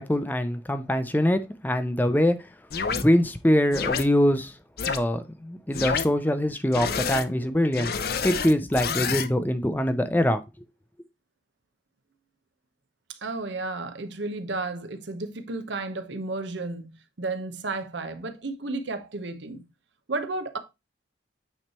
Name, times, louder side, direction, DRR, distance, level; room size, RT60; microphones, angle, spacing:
voice 1, 0.0-2.4 2.9-4.5 4.9-7.9 8.2-10.4, left 1 dB, 10° left, 0.5 m, -23 dB
sound 1, 2.7-3.0 3.7-4.0 4.8-5.0 5.7-6.1 6.7-7.2 7.7-9.3, left 6 dB, 55° left, 0.6 m, -28 dB
voice 2, 13.1-19.7 20.1-20.6, right 3 dB, 75° right, 0.9 m, -33 dB
8.9 x 3.2 x 4.3 m
head